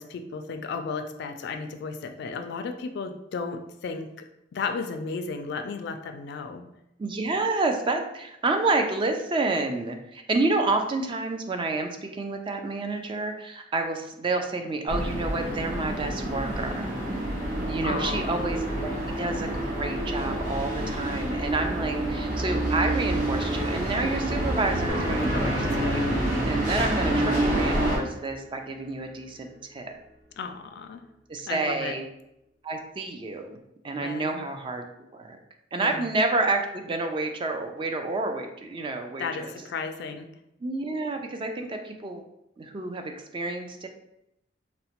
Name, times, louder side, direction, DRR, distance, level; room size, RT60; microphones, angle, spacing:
voice 1, 0.0-4.2 4.5-6.6 17.8-18.6 25.3-26.1 30.4-31.1 31.5-31.9 34.0-34.4 35.8-36.1 39.2-40.3, left 4 dB, 60° left, 7 dB, 0.3 m, -34 dB
voice 2, 7.0-16.8 17.7-29.9 31.3-32.1 32.6-33.6 33.8-34.9 35.1-35.4 35.7-39.5 40.6-42.2 42.6-43.9, right 3 dB, 25° right, 5 dB, 0.3 m, -29 dB
sound 1, 14.9-28.0, right 1 dB, 45° right, 0.8 m, -28 dB
sound 2, 24.9-30.1, equal, 80° right, 1.1 m, -39 dB
4.0 x 2.1 x 2.9 m, 0.83 s
head